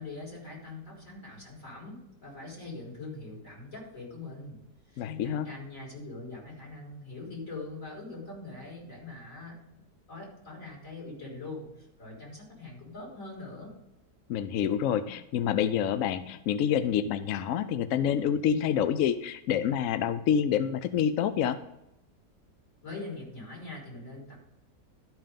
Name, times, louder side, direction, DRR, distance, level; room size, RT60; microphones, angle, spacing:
voice 1, 0.0-4.6 4.9-13.7 22.8-24.4, left 2 dB, 50° left, -4 dB, 4.3 m, -43 dB
voice 2, 5.0-5.5 14.3-21.6, left 9 dB, 70° left, 12 dB, 0.8 m, -27 dB
12.5 x 5.6 x 5.1 m, 0.87 s
omnidirectional pair, 1.8 m